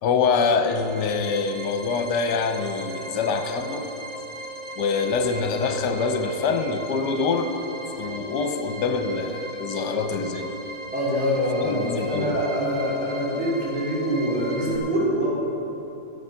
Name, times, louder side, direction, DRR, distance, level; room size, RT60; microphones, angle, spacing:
voice 1, 0.0-3.9 4.8-7.5 8.0-10.5 11.6-12.4, left 4 dB, 65° left, 6 dB, 1.3 m, -25 dB
sound 1, 0.6-14.8, right 1 dB, 30° right, 1.3 m, -38 dB
voice 2, 10.9-15.3, equal, 85° right, -7 dB, 4.3 m, -25 dB
12.0 x 11.5 x 5.6 m, 3.0 s
omnidirectional pair, 2.2 m